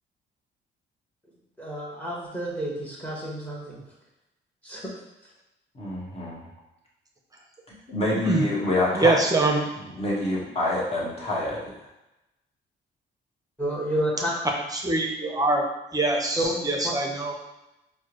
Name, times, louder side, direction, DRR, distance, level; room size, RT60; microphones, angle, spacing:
voice 1, 1.6-3.8 4.6-4.9 13.6-14.3 16.4-16.6, equal, 5° left, -4 dB, 1.3 m, -30 dB
voice 2, 5.7-6.4 7.7-9.2 9.9-11.6, left 2 dB, 30° left, -6 dB, 1.4 m, -26 dB
voice 3, 8.9-9.6 14.7-15.6 15.9-17.3, right 2 dB, 20° right, 1 dB, 0.7 m, -23 dB
4.4 x 2.2 x 3.0 m, 0.93 s
cardioid pair, 90°, 20 cm